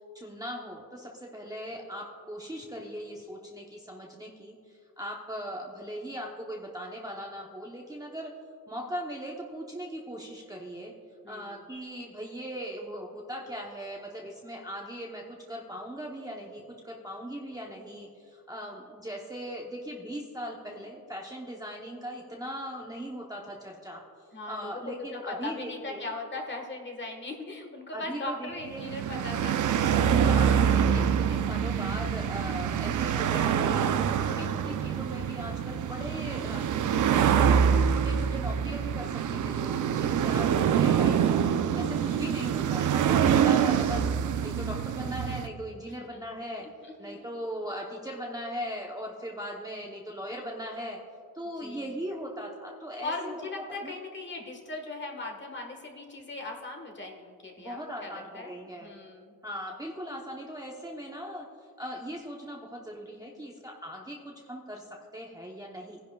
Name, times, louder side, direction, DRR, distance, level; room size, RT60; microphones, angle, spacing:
voice 1, 0.1-8.3 8.7-10.9 11.3-26.0 27.9-28.9 30.1-33.9 34.2-46.6 47.0-51.0 51.3-53.5 53.8-53.9 57.6-58.9 59.4-61.5 61.8-66.0, equal, 10° right, -1 dB, 0.8 m, -39 dB
voice 2, 11.2-11.6 24.3-29.7 29.9-30.1 46.1-46.2 46.8-47.3 51.6-52.0 53.0-59.3, left 2 dB, 30° left, 2 dB, 1.5 m, -39 dB
sound 1, 28.7-45.5, right 8 dB, 50° right, 0.6 m, -25 dB
18.0 x 10.5 x 2.3 m, 2.4 s
cardioid pair, 115°, 38 cm